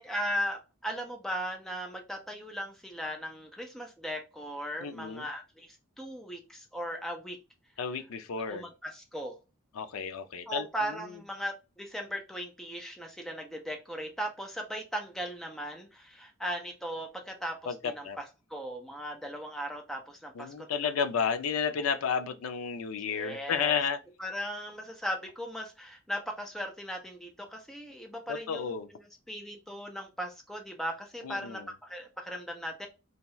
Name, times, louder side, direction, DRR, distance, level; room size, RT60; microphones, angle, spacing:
voice 1, 0.0-7.4 8.5-9.4 10.5-20.8 23.1-23.8 24.2-28.7 29.3-32.9, equal, ahead, 0.5 m, -38 dB
voice 2, 4.8-5.3 7.8-8.6 9.7-11.1 17.7-18.2 20.3-24.0 28.3-28.9 31.2-31.7, left 6 dB, 85° left, 0.4 m, -32 dB
2.8 x 2.2 x 3.0 m
head